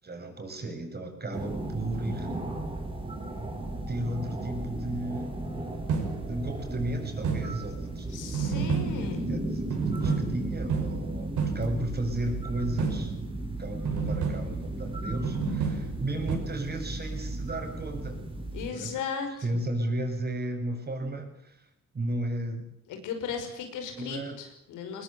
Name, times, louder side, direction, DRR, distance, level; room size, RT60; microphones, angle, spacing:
voice 1, 0.0-2.3 3.9-5.4 6.3-13.1 13.6-18.3 18.7-19.0 19.4-21.7 21.9-22.7 24.0-24.4, right 1 dB, 35° right, 4 dB, 7.4 m, -34 dB
sound 1, 1.3-18.7, right 2 dB, 15° right, 5.8 m, -35 dB
sound 2, 5.7-6.6 7.2-7.9 8.3-9.4 9.7-12.0 12.8-13.5 13.8-14.9 15.2-16.4, right 5 dB, 75° right, 6.4 m, -31 dB
voice 2, 8.1-9.3 18.5-19.6 22.9-25.0, left 6 dB, 90° left, 5 dB, 5.8 m, -36 dB
21.0 x 20.5 x 8.7 m, 0.79 s
cardioid pair, 90°, 30 cm